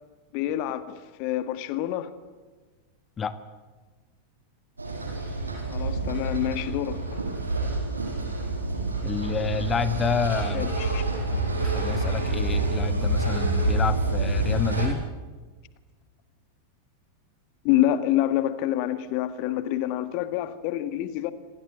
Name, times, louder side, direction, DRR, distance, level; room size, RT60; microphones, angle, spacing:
voice 1, 0.3-2.2 5.7-7.2 10.5-11.1 17.6-21.3, left 13 dB, 45° left, 1.6 m, -27 dB
sound 1, 4.8-14.9, right 2 dB, 80° right, 6.5 m, -27 dB
voice 2, 9.0-10.7 11.6-15.0, left 6 dB, 20° left, 1.8 m, -29 dB
27.5 x 26.0 x 8.2 m
figure-of-eight pair, 90°, 0 cm